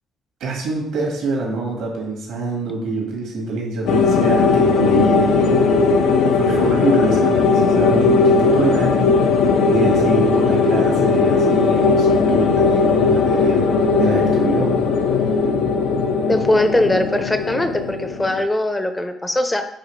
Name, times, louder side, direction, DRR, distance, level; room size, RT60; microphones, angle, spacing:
voice 1, 0.4-5.9 6.3-13.6 14.0-14.8, right 3 dB, 80° right, -1 dB, 1.4 m, -25 dB
sound 1, 3.9-18.4, left 4 dB, 90° left, 0.5 m, -17 dB
voice 2, 16.3-19.7, left 1 dB, 10° left, 8 dB, 0.4 m, -20 dB
5.0 x 3.0 x 3.1 m, 0.74 s
cardioid pair, 110°, 0 cm